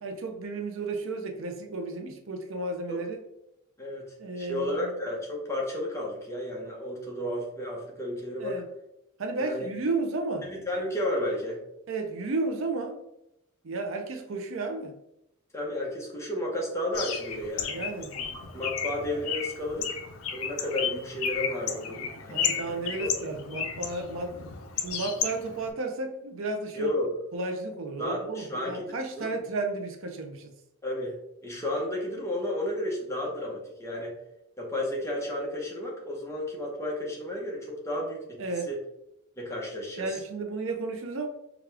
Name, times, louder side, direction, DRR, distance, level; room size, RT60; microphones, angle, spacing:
voice 1, 0.0-3.2 4.2-5.0 8.4-8.6 9.2-10.5 11.9-13.0 13.6-15.0 17.7-18.2 22.3-24.4 24.8-26.9 27.3-30.5 38.4-38.7 40.0-41.3, right 3 dB, 65° right, 0.5 m, -33 dB
voice 2, 3.8-8.6 9.4-9.7 10.4-11.6 15.5-20.0 20.3-22.7 26.8-27.1 28.0-29.4 30.8-31.1 31.4-34.2 34.6-38.4 38.7-38.8 39.4-40.2, left 1 dB, 15° left, 0.9 m, -33 dB
Bird, 16.9-25.7, left 7 dB, 75° left, 0.6 m, -33 dB
4.9 x 2.3 x 3.3 m
head